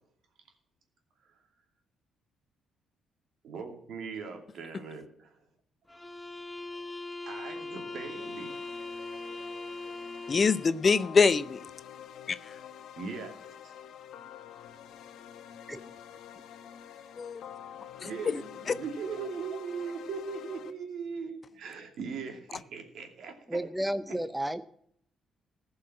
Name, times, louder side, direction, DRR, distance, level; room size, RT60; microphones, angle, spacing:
voice 1, 3.4-5.4 6.7-6.9 7.3-8.6 13.0-13.7 18.0-23.6 24.1-24.2, right 5 dB, 70° right, 4 dB, 2.5 m, -40 dB
sound 1, 5.9-10.9, left 2 dB, 10° left, 1.1 m, -40 dB
sound 2, 7.6-20.7, left 9 dB, 80° left, 1.1 m, -48 dB
voice 2, 10.3-11.6 12.3-12.4 17.2-17.4 18.0-18.4, left 5 dB, 40° left, 15 dB, 0.6 m, -24 dB
voice 3, 23.5-24.6, right 1 dB, 5° right, 12 dB, 0.5 m, -32 dB
15.0 x 5.6 x 8.6 m, 0.69 s
cardioid pair, 90°, 0 cm